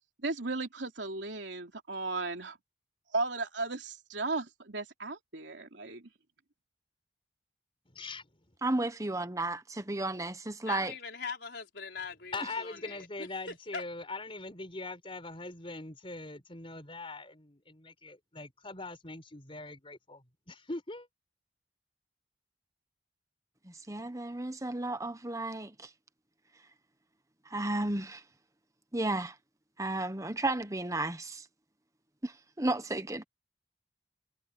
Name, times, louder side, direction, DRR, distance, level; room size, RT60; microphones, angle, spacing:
voice 1, 0.2-2.6 3.1-6.1, right 3 dB, 85° right, 3.1 m, -35 dB
voice 2, 7.9-8.3 12.3-21.1, left 3 dB, 30° left, 4.8 m, -42 dB
voice 3, 8.6-10.9 23.6-25.9 27.4-28.2 28.9-29.4 29.8-31.5 32.2-33.2, right 2 dB, 20° right, 1.3 m, -33 dB
voice 4, 10.7-13.3 13.7-13.8, left 5 dB, 65° left, 5.1 m, -41 dB
head